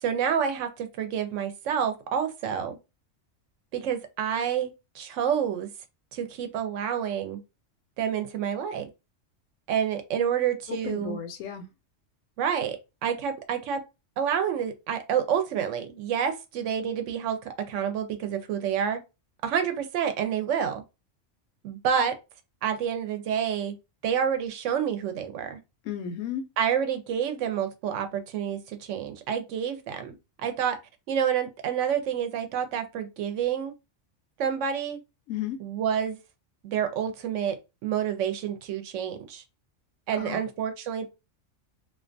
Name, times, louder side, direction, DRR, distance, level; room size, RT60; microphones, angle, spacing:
voice 1, 0.0-2.8 3.7-5.7 6.1-7.4 8.0-8.9 9.7-11.2 12.4-13.8 14.2-19.0 19.4-20.8 21.6-22.2 22.6-23.7 24.0-25.6 26.6-30.8 31.1-33.7 34.4-35.0 35.6-36.2 36.6-37.6 37.8-39.4 40.1-41.0, right 8 dB, 75° right, 0.9 m, -28 dB
voice 2, 10.7-11.7 25.8-26.4 35.3-35.6 40.2-40.4, left 9 dB, 90° left, 1.0 m, -33 dB
2.4 x 2.2 x 2.5 m
omnidirectional pair, 1.3 m